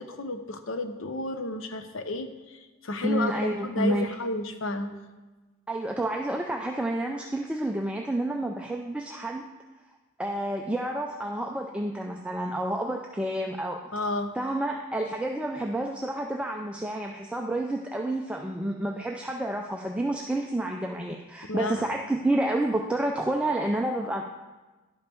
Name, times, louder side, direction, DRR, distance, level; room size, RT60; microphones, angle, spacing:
voice 1, 0.0-4.9 13.9-14.3 21.5-21.9, left 2 dB, 65° left, 8 dB, 0.7 m, -32 dB
voice 2, 3.0-4.1 5.7-9.4 10.2-13.8 14.4-24.2, right 1 dB, 5° right, 1 dB, 0.4 m, -29 dB
11.0 x 5.3 x 4.4 m, 1.2 s
head